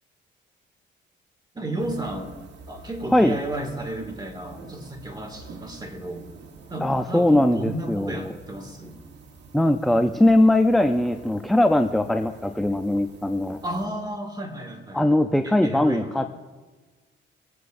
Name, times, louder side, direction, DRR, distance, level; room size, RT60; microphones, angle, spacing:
voice 1, 1.5-2.3 2.7-6.3 6.7-9.0 13.6-15.0 15.4-16.3, right 1 dB, 20° right, 2 dB, 2.1 m, -33 dB
sound 1, 1.8-13.9, right 3 dB, 60° right, 1.3 m, -47 dB
voice 2, 6.8-8.3 9.5-13.6 14.9-16.4, left 1 dB, ahead, 7 dB, 0.5 m, -20 dB
21.5 x 8.0 x 2.6 m, 1.3 s
cardioid pair, 90°, 20 cm